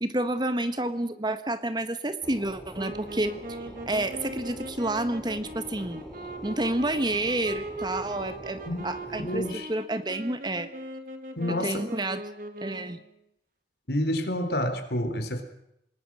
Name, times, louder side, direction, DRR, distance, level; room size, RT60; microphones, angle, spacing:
voice 1, 0.0-3.3 3.8-6.0 6.4-10.7 11.6-12.2 12.6-13.0, right 1 dB, 25° right, 10 dB, 1.4 m, -29 dB
sound 1, 2.2-9.5, equal, 5° left, 5.7 m, -45 dB
sound 2, 2.7-13.1, right 2 dB, 50° right, 2.5 m, -40 dB
voice 2, 9.2-9.7 11.4-11.9 13.9-15.4, left 1 dB, 65° left, 7 dB, 3.9 m, -29 dB
27.0 x 20.5 x 6.3 m, 0.80 s
head